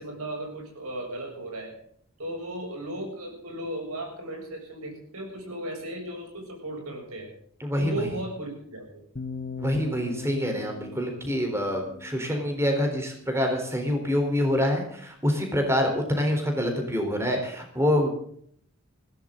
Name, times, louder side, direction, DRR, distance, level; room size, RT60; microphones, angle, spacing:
voice 1, 0.0-1.8 2.2-7.3 7.8-9.0, right 1 dB, 85° right, 2 dB, 7.2 m, -36 dB
voice 2, 7.6-8.1 9.6-18.1, equal, 10° right, 3 dB, 3.8 m, -26 dB
sound 1, 9.2-13.2, left 4 dB, 40° left, 1.0 m, -40 dB
20.5 x 16.0 x 3.9 m, 0.62 s
head